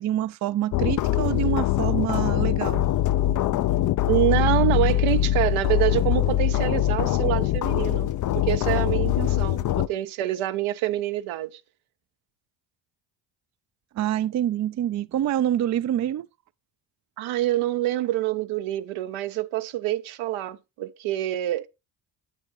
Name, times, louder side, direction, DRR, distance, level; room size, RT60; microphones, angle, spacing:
voice 1, 0.0-2.9 13.9-16.3, right 11 dB, 40° right, 0.4 m, -26 dB
sound 1, 0.7-9.9, left 13 dB, 40° left, 0.4 m, -23 dB
voice 2, 4.1-8.1 8.3-11.6 17.2-21.7, right 14 dB, 80° right, 0.8 m, -26 dB
8.2 x 8.0 x 3.0 m
supercardioid pair, 65°, 48 cm